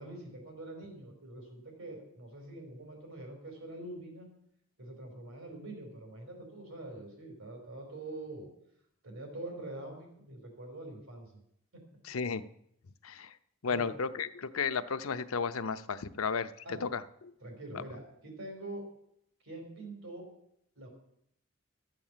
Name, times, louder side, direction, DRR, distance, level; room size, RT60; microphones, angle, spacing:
voice 1, 0.0-4.3 4.8-8.5 9.0-11.3 11.7-11.8 13.7-13.9 16.6-16.9 17.4-18.8 19.4-20.3 20.7-20.9, right 2 dB, 80° right, 2 dB, 4.6 m, -45 dB
voice 2, 12.0-12.4 13.0-13.3 13.6-17.3 17.7-17.8, left 5 dB, 85° left, 11 dB, 0.7 m, -34 dB
13.0 x 7.6 x 7.4 m, 0.74 s
head